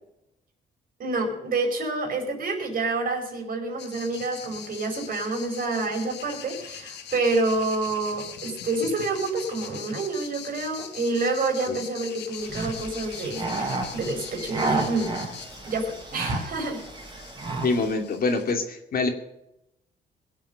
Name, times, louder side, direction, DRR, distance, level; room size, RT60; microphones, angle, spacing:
voice 1, 1.0-15.1 15.7-16.8, right 3 dB, 55° right, 2 dB, 4.6 m, -28 dB
sound 1, 3.8-18.5, left 9 dB, 80° left, 1.6 m, -42 dB
sound 2, 12.4-18.0, right 3 dB, 25° right, 3.7 m, -32 dB
voice 2, 17.5-19.1, left 3 dB, 60° left, 5 dB, 2.4 m, -25 dB
21.0 x 7.5 x 6.6 m, 0.84 s
cardioid pair, 95°, 17 cm